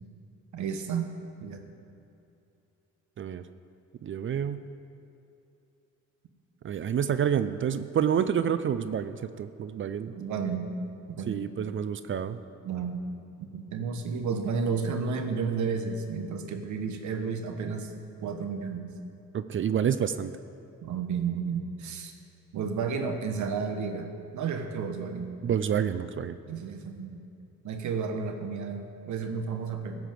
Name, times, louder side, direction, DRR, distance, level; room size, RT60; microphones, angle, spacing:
voice 1, 0.5-1.1 1.4-1.7 10.1-10.7 11.1-11.4 12.6-13.0 13.4-17.9 18.2-18.9 20.8-22.1 22.5-24.1 24.3-25.3 26.5-27.2 27.6-30.1, right 5 dB, 70° right, 6 dB, 1.2 m, -32 dB
voice 2, 4.0-4.6 6.6-10.1 11.3-12.4 19.3-20.3 25.4-26.4, right 8 dB, 40° right, 12 dB, 0.5 m, -28 dB
15.0 x 5.0 x 7.6 m, 2.7 s
cardioid pair, 90°, 30 cm